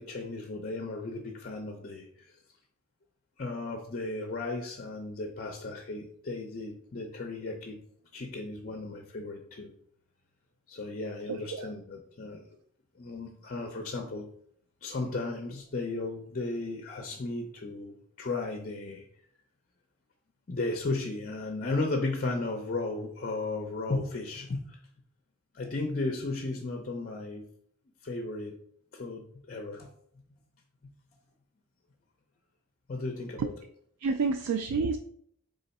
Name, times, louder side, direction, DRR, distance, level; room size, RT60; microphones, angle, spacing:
voice 1, 0.0-2.3 3.4-7.8 8.1-9.7 10.7-12.4 13.0-14.3 14.8-19.1 20.5-24.8 25.5-27.4 28.0-28.5 28.9-29.9 32.9-33.5, left 2 dB, 40° left, 3 dB, 0.5 m, -35 dB
voice 2, 11.3-11.7 33.4-33.5 34.0-35.0, right 4 dB, 85° right, 7 dB, 0.3 m, -29 dB
3.7 x 3.3 x 4.1 m, 0.67 s
head